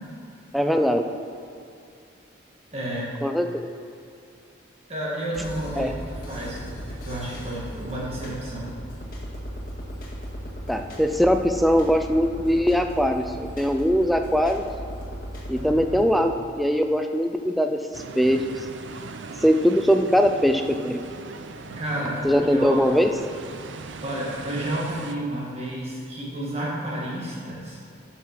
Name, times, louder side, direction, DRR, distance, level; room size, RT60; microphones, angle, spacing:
voice 1, 0.5-1.1 3.2-3.7 5.8-5.9 10.7-14.6 15.5-18.4 19.4-21.0 22.2-23.1, equal, ahead, 5 dB, 0.4 m, -21 dB
voice 2, 2.7-3.1 4.9-8.7 15.6-16.2 21.7-22.8 24.0-27.8, right 1 dB, 30° right, -5 dB, 1.7 m, -31 dB
sound 1, 5.3-16.0, equal, 45° left, 1.7 m, -37 dB
sound 2, 17.9-25.1, right 3 dB, 65° right, 0.6 m, -39 dB
10.0 x 5.8 x 5.9 m, 2.5 s
head